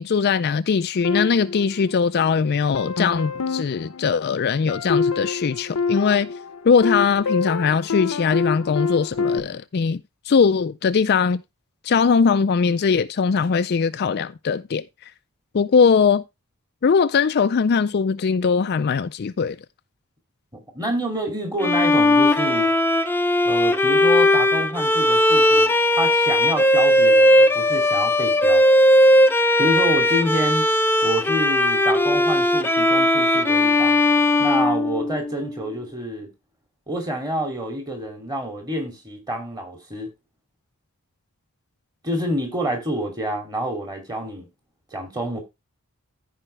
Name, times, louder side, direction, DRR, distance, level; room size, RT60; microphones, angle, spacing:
voice 1, 0.0-6.3 6.6-10.0 10.3-11.4 11.8-14.8 15.5-16.2 16.8-19.6, left 5 dB, 45° left, 0.4 m, -20 dB
sound 1, 1.0-2.3 2.8-9.4, left 5 dB, 80° left, 0.7 m, -27 dB
voice 2, 20.5-22.7 23.4-28.6 29.6-30.7 31.0-34.0 34.4-36.3 36.9-40.1 42.0-44.5 44.9-45.4, right 1 dB, 20° right, 2.7 m, -28 dB
Bowed string instrument, 21.6-35.5, left 1 dB, 10° left, 0.6 m, -18 dB
14.5 x 5.0 x 3.2 m
head